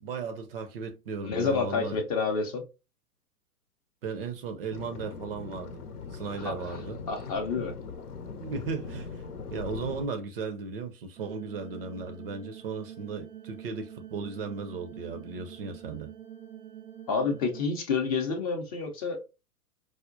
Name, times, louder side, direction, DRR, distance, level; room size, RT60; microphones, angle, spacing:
voice 1, 0.0-2.0 4.0-5.8 6.1-7.0 8.4-9.2 9.5-16.1, right 4 dB, 40° right, 0.5 m, -36 dB
voice 2, 1.2-2.6 6.4-6.8 7.1-7.8 17.1-19.3, left 4 dB, 25° left, 0.5 m, -29 dB
sound 1, 4.7-10.1, left 5 dB, 75° left, 0.8 m, -40 dB
sound 2, 11.2-17.6, right 10 dB, 75° right, 0.8 m, -46 dB
4.8 x 2.1 x 2.5 m
figure-of-eight pair, 110°, 46 cm